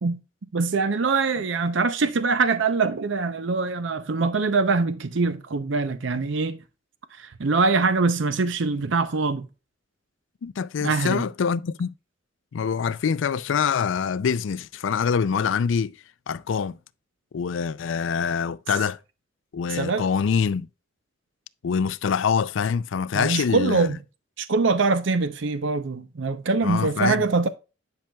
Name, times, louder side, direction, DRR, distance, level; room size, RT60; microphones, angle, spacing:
voice 1, 0.5-6.6 7.1-9.5 10.8-11.2 19.7-20.0 23.1-24.0 24.4-27.5, right 4 dB, 70° right, 0.6 m, -23 dB
voice 2, 10.4-11.9 12.5-15.9 16.3-16.8 17.3-19.0 19.5-20.7 21.6-23.9 26.6-27.2, left 6 dB, 70° left, 0.4 m, -25 dB
10.5 x 5.6 x 2.3 m
head